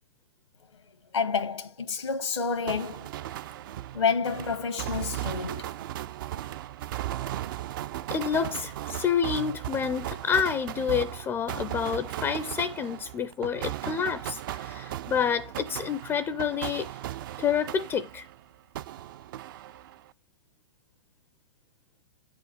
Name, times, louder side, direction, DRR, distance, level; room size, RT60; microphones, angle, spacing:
voice 1, 1.1-3.1 3.9-5.7, left 5 dB, 90° left, 1.2 m, -29 dB
sound 1, 2.7-18.4 18.7-20.1, right 13 dB, 45° right, 0.4 m, -37 dB
voice 2, 8.1-16.9 17.4-18.3, left 7 dB, 15° left, 0.4 m, -28 dB
8.8 x 5.0 x 5.2 m
hypercardioid pair, 120°, 15 cm